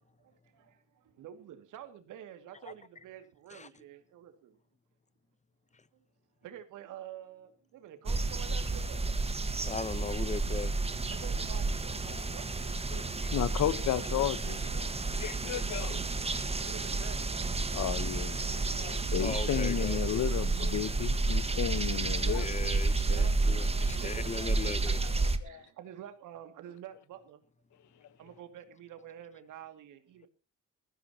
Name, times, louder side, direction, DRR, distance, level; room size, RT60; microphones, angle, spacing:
voice 1, 0.2-4.6 5.9-6.0 6.4-9.1 11.1-13.1 13.9-15.0 15.4-15.5 16.6-17.8 22.2-22.3 23.0-27.4 28.2-30.3, right 10 dB, 85° right, 2.2 m, -49 dB
sound 1, 8.1-25.4, right 3 dB, 20° right, 1.4 m, -31 dB
voice 2, 9.7-10.7 19.2-20.2 22.4-25.0, left 4 dB, 25° left, 0.8 m, -38 dB
voice 3, 11.8-12.2 12.9-13.0 13.3-14.9 15.2-16.0 17.7-23.1 24.9-25.6 28.0-28.1, left 12 dB, 75° left, 1.1 m, -34 dB
20.0 x 15.0 x 2.9 m
cardioid pair, 90°, 30 cm